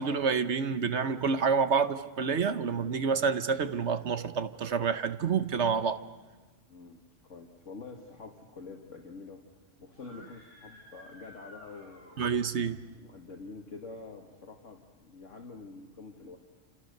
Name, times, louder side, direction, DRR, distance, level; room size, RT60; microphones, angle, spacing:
voice 1, 0.0-6.0 12.2-12.9, right 5 dB, 60° right, 1.3 m, -28 dB
voice 2, 6.7-9.4 9.8-12.3 13.0-16.4, left 4 dB, 70° left, 2.2 m, -47 dB
Screaming, 9.9-12.7, left 1 dB, 35° right, 7.6 m, -54 dB
29.0 x 27.0 x 6.7 m
omnidirectional pair, 1.3 m